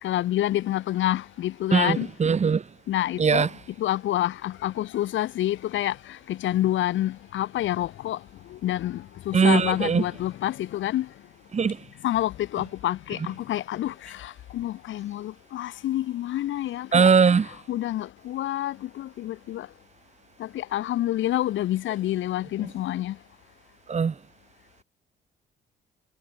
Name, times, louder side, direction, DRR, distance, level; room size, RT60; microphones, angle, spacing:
voice 1, 0.0-2.1 2.9-3.5 3.8-8.2 8.5-11.1 12.0-17.1 17.4-19.7 20.4-23.2, left 13 dB, 75° left, 0.9 m, -28 dB
voice 2, 1.7-2.6 3.2-3.5 9.3-10.0 11.5-11.8 16.9-17.5 23.9-24.1, right 6 dB, 35° right, 1.5 m, -20 dB
cardioid pair, 90°, 20 cm